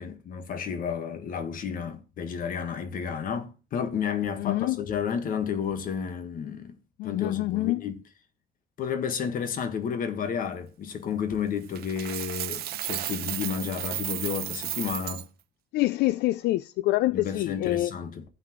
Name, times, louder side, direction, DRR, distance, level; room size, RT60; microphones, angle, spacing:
voice 1, 0.0-6.8 7.0-8.0 8.8-15.3 17.1-18.2, left 7 dB, 55° left, 1.6 m, -31 dB
voice 2, 4.4-4.8 7.0-7.8 15.7-17.9, left 17 dB, 80° left, 0.4 m, -26 dB
Coin (dropping), 11.7-15.2, right 14 dB, 65° right, 0.8 m, -33 dB
15.0 x 5.9 x 3.1 m
cardioid pair, 110°, 17 cm